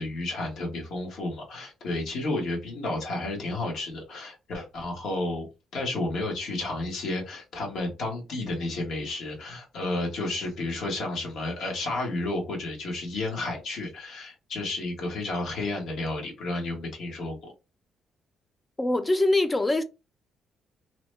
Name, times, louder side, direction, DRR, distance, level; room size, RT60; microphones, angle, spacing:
voice 1, 0.0-5.5 5.7-17.5, left 2 dB, 75° left, 1.2 m, -31 dB
voice 2, 18.8-19.8, left 2 dB, 20° left, 0.5 m, -23 dB
2.9 x 2.1 x 3.1 m
cardioid pair, 90°, 0 cm